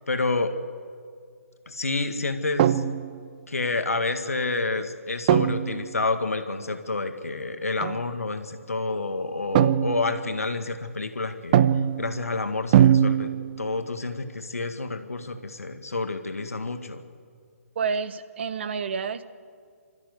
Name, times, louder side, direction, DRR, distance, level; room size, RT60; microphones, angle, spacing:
voice 1, 0.1-0.6 1.7-2.8 3.5-11.6 12.0-13.3 13.6-17.0, left 3 dB, 75° left, 7 dB, 1.8 m, -29 dB
sound 1, 2.6-3.3 5.3-5.9 7.8-8.0 9.6-10.3 11.5-12.2 12.7-13.7, right 10 dB, 35° right, 0.6 m, -21 dB
voice 2, 17.7-19.2, right 5 dB, 50° right, 13 dB, 1.1 m, -29 dB
26.0 x 13.5 x 8.1 m, 2.1 s
figure-of-eight pair, 135°, 8 cm